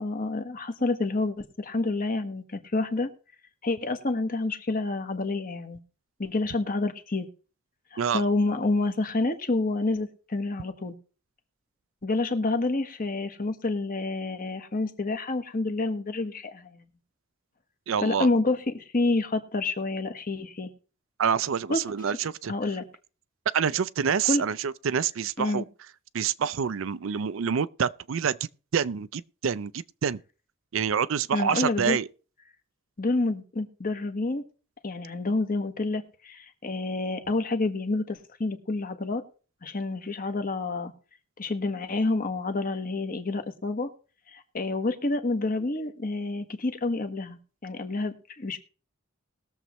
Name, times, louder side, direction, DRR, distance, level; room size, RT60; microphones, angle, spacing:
voice 1, 0.0-3.1 3.6-5.8 6.2-7.3 7.9-11.0 12.0-16.8 18.0-20.7 21.7-21.8 22.5-22.8 24.3-24.4 25.4-25.6 31.3-32.0 33.0-34.4 34.8-39.2 39.6-40.9 41.4-43.9 44.3-48.6, left 2 dB, 45° left, 1.3 m, -28 dB
voice 2, 17.9-18.3 21.2-22.5 23.5-25.7 26.1-28.4 28.7-30.2 30.7-32.1, right 7 dB, 75° right, 0.5 m, -27 dB
20.5 x 7.2 x 3.1 m
head